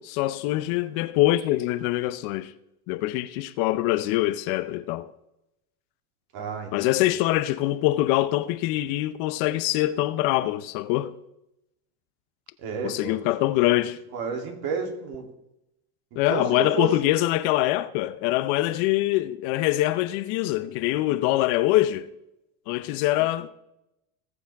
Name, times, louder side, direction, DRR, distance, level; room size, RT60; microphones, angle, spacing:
voice 1, 0.0-2.5 2.9-5.1 6.7-11.1 12.8-14.0 16.1-22.1 22.7-23.5, left 16 dB, 60° left, 0.8 m, -24 dB
voice 2, 6.3-7.0 12.6-13.2 14.1-15.2 16.3-16.9, right 5 dB, 55° right, 3.0 m, -31 dB
18.5 x 7.3 x 3.5 m
supercardioid pair, 110°, 45 cm